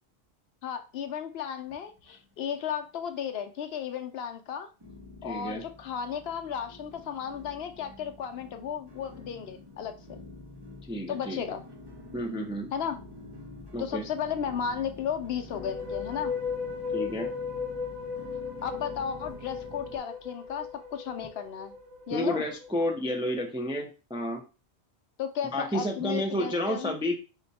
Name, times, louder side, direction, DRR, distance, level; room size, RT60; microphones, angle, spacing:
voice 1, 0.6-4.7 5.2-10.2 11.1-11.6 12.7-13.0 13.8-16.3 18.6-21.7 22.1-22.4 25.2-26.9, left 8 dB, 70° left, 7 dB, 0.8 m, -34 dB
sound 1, 1.6-2.6 2.8-3.5 4.0-4.1 4.8-20.0, left 2 dB, 25° right, 0.8 m, -48 dB
voice 2, 5.2-5.6 10.9-11.4 12.1-12.7 13.7-14.0 16.9-17.3 22.1-24.4 25.5-27.2, left 1 dB, 10° right, 3 dB, 0.3 m, -30 dB
sound 2, 15.4-22.7, left 5 dB, 85° right, 1.3 m, -36 dB
4.9 x 2.2 x 4.0 m, 0.32 s
omnidirectional pair, 1.1 m